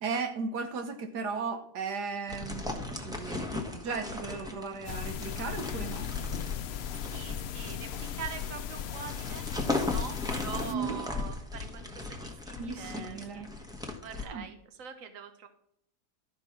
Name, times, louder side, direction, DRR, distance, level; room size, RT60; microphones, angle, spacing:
voice 1, 0.0-6.1 10.7-11.0 12.6-13.5 14.2-14.5, right 5 dB, 85° right, 1.6 m, -36 dB
sound 1, 2.3-14.3, left 3 dB, 5° right, 1.2 m, -37 dB
sound 2, 4.8-10.7, left 8 dB, 85° left, 0.5 m, -37 dB
voice 2, 7.1-13.5 14.0-15.5, right 7 dB, 55° right, 1.5 m, -43 dB
13.0 x 5.3 x 6.0 m
omnidirectional pair, 1.7 m